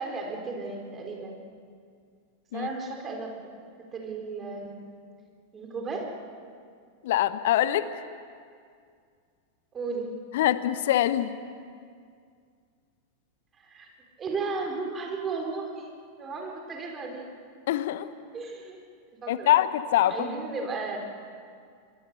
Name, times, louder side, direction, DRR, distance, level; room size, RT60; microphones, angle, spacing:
voice 1, 0.0-1.4 2.5-3.3 3.9-5.0 5.5-6.1 9.7-10.2 13.6-13.9 14.2-15.9 16.2-17.3 18.3-18.8 19.2-19.5 20.1-21.0, right 4 dB, 25° right, 1 dB, 4.1 m, -34 dB
voice 2, 7.0-7.9 10.3-11.4 17.7-18.1 19.3-20.3, left 13 dB, 55° left, 13 dB, 1.0 m, -24 dB
24.0 x 23.5 x 6.6 m, 2.2 s
figure-of-eight pair, 90°, 0 cm